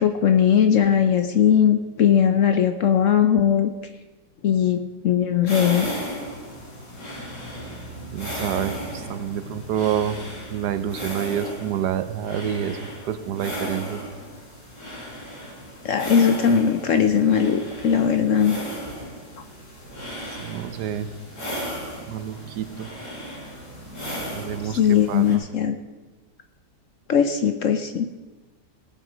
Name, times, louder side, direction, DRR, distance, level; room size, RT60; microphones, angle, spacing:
voice 1, 0.0-3.7 4.4-5.9 15.8-18.6 24.6-25.8 27.1-28.1, left 8 dB, 60° left, 8 dB, 0.9 m, -19 dB
sound 1, 5.5-25.3, equal, 75° left, 5.4 m, -35 dB
voice 2, 8.1-10.2 10.5-14.0 20.4-21.1 22.1-22.9 24.3-25.5, right 9 dB, 75° right, 12 dB, 1.3 m, -28 dB
18.0 x 7.7 x 5.1 m, 1.2 s
omnidirectional pair, 1.8 m